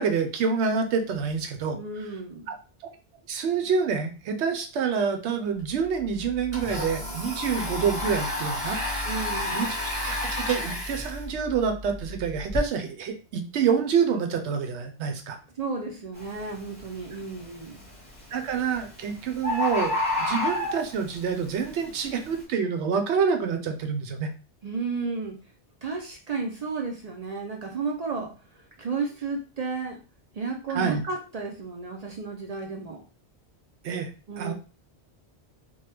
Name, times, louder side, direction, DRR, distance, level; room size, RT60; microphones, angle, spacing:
voice 1, 0.0-1.8 2.5-2.6 3.3-8.8 9.5-15.4 18.3-24.3 30.7-31.0 33.8-34.1 34.4-34.5, right 6 dB, 85° right, 6 dB, 0.9 m, -27 dB
voice 2, 1.7-2.5 9.0-9.7 15.6-17.8 24.6-25.4 25.8-28.3 28.8-30.0 30.3-33.0 34.3-34.5, right 4 dB, 55° right, 1 dB, 0.4 m, -32 dB
Domestic sounds home sounds, 5.6-5.7 6.0-12.6, left 1 dB, 25° right, 1.2 m, -32 dB
Bird, 16.2-16.4 16.9-17.4 18.4-18.5 18.8-18.9 19.1-19.2 19.4-21.1 21.7-21.8, left 2 dB, 5° right, 1.5 m, -27 dB
3.0 x 2.2 x 3.3 m, 0.35 s
omnidirectional pair, 1.1 m